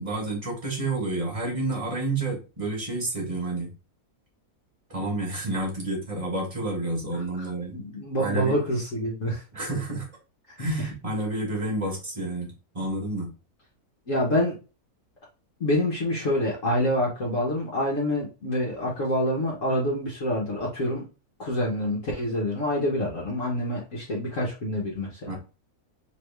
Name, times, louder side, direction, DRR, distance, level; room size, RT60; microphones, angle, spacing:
voice 1, 0.0-3.7 4.9-7.8 8.2-8.6 9.5-10.1 10.6-13.3 25.2-25.4, right 2 dB, 25° right, -1 dB, 1.4 m, -30 dB
voice 2, 7.7-9.4 14.1-14.6 15.6-21.0 21.4-25.4, left 1 dB, 60° left, -3 dB, 1.4 m, -26 dB
3.3 x 3.2 x 3.3 m, 0.31 s
omnidirectional pair, 1.6 m